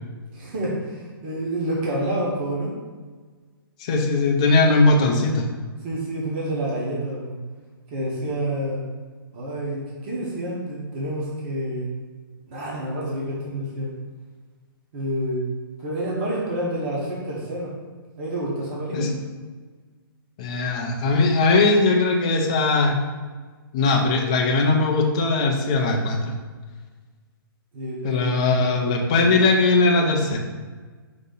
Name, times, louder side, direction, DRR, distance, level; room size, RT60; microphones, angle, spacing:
voice 1, 0.3-2.7 5.8-7.3 7.9-8.8 9.3-11.9 12.5-13.9 14.9-15.5 15.8-17.7 18.2-19.1 27.7-28.4, right 1 dB, 25° right, -5 dB, 0.9 m, -28 dB
voice 2, 3.8-5.5 18.9-19.1 20.4-23.0 23.7-26.3 28.0-30.4, left 3 dB, 15° left, 1 dB, 0.3 m, -19 dB
5.0 x 2.7 x 3.8 m, 1.4 s
hypercardioid pair, 170°, 13 cm